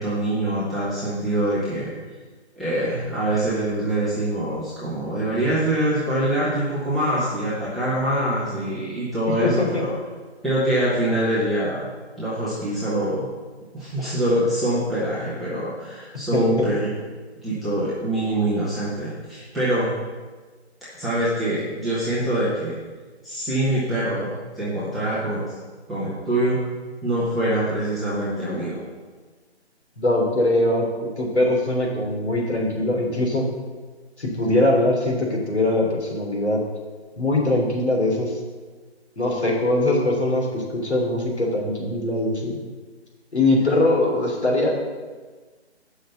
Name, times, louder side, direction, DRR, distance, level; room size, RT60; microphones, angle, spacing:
voice 1, 0.0-1.9 2.5-9.9 10.4-11.9 12.2-13.3 13.7-16.9 17.4-19.9 21.0-22.8 23.2-25.5 25.9-26.6 27.0-28.9, right 1 dB, ahead, -14 dB, 0.9 m, -24 dB
voice 2, 9.3-9.8 16.3-16.7 30.0-33.5 34.2-36.6 37.2-38.4 39.2-42.6 43.3-44.7, left 1 dB, 75° left, -2 dB, 3.3 m, -22 dB
10.0 x 5.7 x 6.9 m, 1.4 s
figure-of-eight pair, 150°, 33 cm